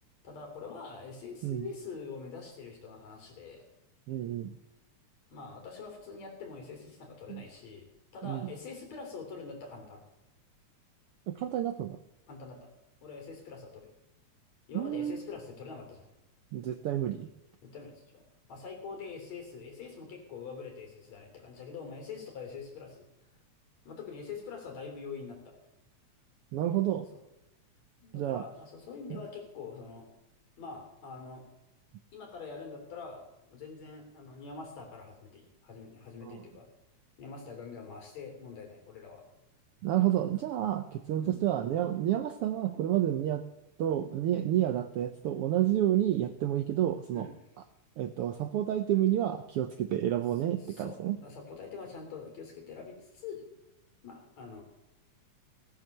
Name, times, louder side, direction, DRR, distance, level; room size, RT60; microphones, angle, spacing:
voice 1, 0.2-3.6 5.3-7.9 8.1-10.0 12.3-12.7 13.0-13.9 14.7-16.1 17.6-18.2 18.5-23.1 23.8-25.5 27.1-27.2 28.0-30.1 30.6-31.5 32.1-33.2 33.5-36.7 37.2-39.2 41.2-41.4 47.1-47.3 50.6-53.5 54.0-54.6, left 5 dB, 65° left, 2 dB, 4.5 m, -44 dB
voice 2, 4.1-4.6 7.3-7.4 8.2-8.5 11.3-12.0 14.7-15.2 16.5-17.3 26.5-27.1 28.1-28.4 29.1-29.2 36.2-36.4 39.8-43.5 43.8-47.3 48.0-51.2, right 12 dB, 80° right, 9 dB, 1.3 m, -30 dB
17.5 x 9.2 x 6.7 m, 0.90 s
omnidirectional pair, 3.4 m